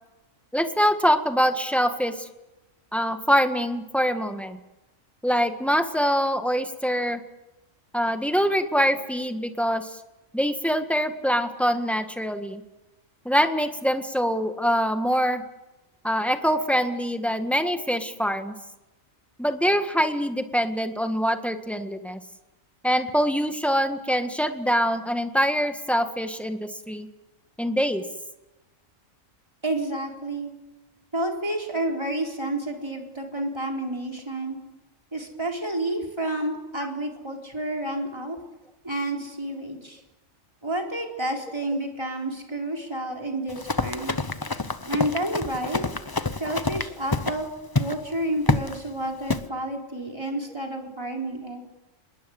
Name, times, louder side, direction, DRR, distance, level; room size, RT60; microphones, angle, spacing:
voice 1, 0.5-2.3 2.9-4.6 5.2-7.2 7.9-10.0 10.3-12.6 13.2-15.4 16.0-18.5 19.4-22.2 22.8-27.1 27.6-28.0, equal, ahead, 7 dB, 1.6 m, -24 dB
voice 2, 29.6-30.5 31.1-34.6 35.1-38.4 38.8-40.0 40.6-44.1 44.9-45.8 46.3-47.5 47.8-51.6, right 1 dB, 20° right, 1 dB, 4.1 m, -30 dB
Run, 43.5-47.4 47.7-48.0 48.5-48.8 49.3-49.5, left 3 dB, 20° left, 0.8 m, -27 dB
26.5 x 21.5 x 7.9 m, 1.0 s
omnidirectional pair, 1.4 m